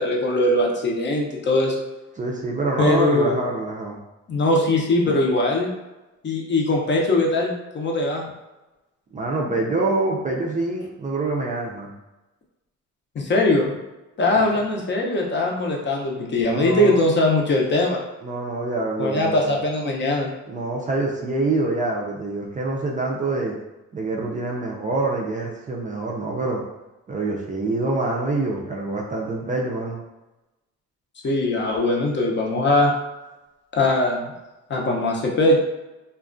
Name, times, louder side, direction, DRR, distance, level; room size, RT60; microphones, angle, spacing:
voice 1, 0.0-1.8 2.8-3.4 4.3-5.7 6.2-8.2 13.2-13.8 14.2-18.0 19.0-20.3 31.2-32.9 33.7-34.3 34.7-35.6, left 2 dB, 40° left, -1 dB, 0.6 m, -21 dB
voice 2, 2.2-4.0 9.1-11.9 14.3-14.4 16.4-17.0 18.2-19.6 20.5-23.6 23.9-26.6 27.1-30.0, right 2 dB, 25° right, -2 dB, 0.4 m, -26 dB
2.3 x 2.2 x 2.4 m, 1.0 s
cardioid pair, 90°, 30 cm